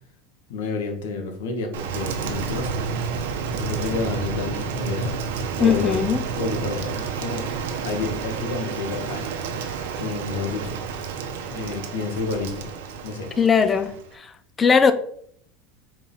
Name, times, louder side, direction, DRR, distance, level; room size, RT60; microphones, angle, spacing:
voice 1, 0.5-2.7 3.5-5.2 5.6-6.0 6.4-7.5 7.8-10.8 11.5-12.7 13.0-13.3, left 3 dB, 90° left, 2.1 m, -30 dB
Rain, 1.7-14.1, right 5 dB, 80° right, 1.1 m, -30 dB
voice 2, 5.6-6.3 13.4-14.3 14.6-14.9, left 6 dB, 15° left, 0.6 m, -19 dB
5.0 x 4.7 x 5.8 m
supercardioid pair, 170°, 0 cm